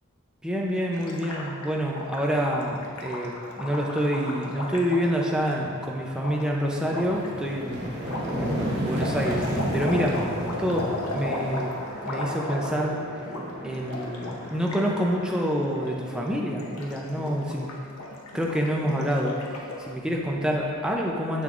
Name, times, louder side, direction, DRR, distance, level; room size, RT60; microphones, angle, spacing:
voice 1, 0.4-7.9 8.3-11.7 12.0-13.0 13.6-17.7 18.3-19.4 19.9-21.4, equal, 5° right, -2 dB, 0.5 m, -27 dB
Gurgling, 0.9-5.6 6.2-6.3 6.9-7.3 8.0-13.0 13.2-13.4 13.7-14.9 15.1-15.3 15.7-16.2 16.5-19.9, left 2 dB, 90° left, 0.8 m, -35 dB
sound 1, 5.0-5.2 5.6-16.4, right 1 dB, 50° right, 0.9 m, -33 dB
6.8 x 6.7 x 2.5 m, 2.3 s
head